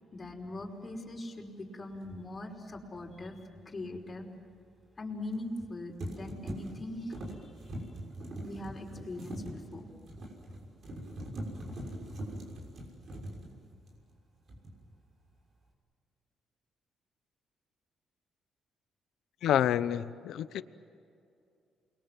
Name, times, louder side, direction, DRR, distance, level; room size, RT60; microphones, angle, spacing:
voice 1, 0.1-3.4 3.7-4.3 5.0-7.5 8.4-9.9, left 1 dB, 30° left, 0 dB, 5.2 m, -41 dB
sound 1, 2.0-2.2 5.3-5.7 6.0-14.2 14.5-14.9, right 1 dB, 55° right, 6.3 m, -42 dB
voice 2, 19.4-20.6, left 10 dB, 75° left, 14 dB, 0.8 m, -28 dB
29.0 x 22.5 x 7.7 m, 2.5 s
cardioid pair, 90°, 0 cm